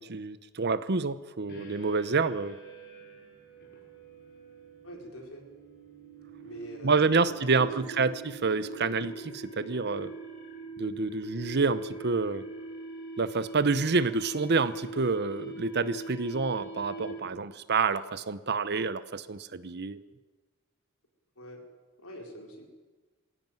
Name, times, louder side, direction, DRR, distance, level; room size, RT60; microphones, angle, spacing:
voice 1, 0.0-2.6 6.8-10.1 10.8-12.4 13.2-20.0, right 4 dB, 50° right, 15 dB, 0.9 m, -28 dB
sound 1, 1.5-17.4, right 3 dB, 55° left, 6.7 m, -43 dB
voice 2, 4.8-5.5 6.4-8.0 21.4-21.6 22.0-22.7, right 1 dB, 75° left, 2 dB, 4.8 m, -44 dB
21.0 x 16.5 x 9.2 m, 1.3 s
head